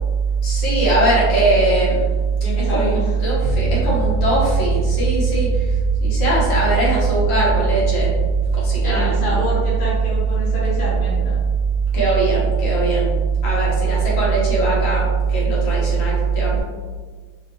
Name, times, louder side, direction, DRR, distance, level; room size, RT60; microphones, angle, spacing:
voice 1, 0.4-2.0 2.7-5.6 6.0-8.1 8.5-9.5 11.9-13.2 13.4-16.6, right 3 dB, 90° left, -6 dB, 1.9 m, -18 dB
voice 2, 2.4-3.0 8.8-11.4, left 1 dB, 60° left, -8 dB, 1.3 m, -26 dB
sound 1, 3.4-15.3, left 2 dB, 65° right, 1.2 m, -30 dB
3.9 x 2.6 x 3.0 m, 1.5 s
omnidirectional pair, 2.0 m